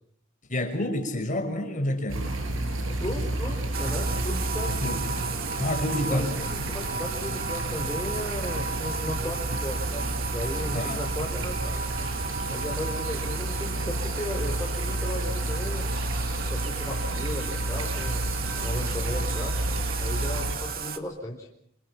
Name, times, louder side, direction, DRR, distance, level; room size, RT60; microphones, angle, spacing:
voice 1, 0.5-2.3 4.8-5.0 5.6-6.3 10.7-11.0, left 1 dB, 40° left, 4 dB, 5.9 m, -28 dB
sound 1, 2.1-20.6, right 1 dB, 80° right, 6.9 m, -31 dB
voice 2, 3.0-4.7 6.0-11.8 12.5-15.9 16.5-19.6 20.0-21.5, left 1 dB, 15° left, -2 dB, 4.2 m, -36 dB
Bathtub (filling or washing), 3.7-21.0, right 5 dB, 50° right, 2.2 m, -34 dB
28.0 x 28.0 x 5.9 m, 0.68 s
head